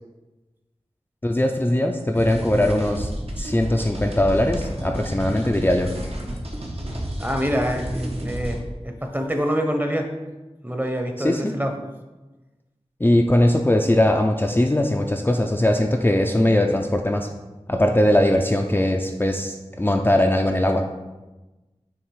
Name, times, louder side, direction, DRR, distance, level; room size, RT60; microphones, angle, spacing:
voice 1, 1.2-5.9 11.2-11.4 13.0-17.3 17.7-20.8, left 1 dB, 20° left, 2 dB, 0.4 m, -20 dB
sound 1, 2.1-8.6, equal, 65° right, 1.0 m, -31 dB
voice 2, 7.2-10.0 10.6-11.7, equal, 15° right, 4 dB, 0.8 m, -25 dB
7.1 x 2.9 x 4.7 m, 1.1 s
wide cardioid pair, 50°, 11 cm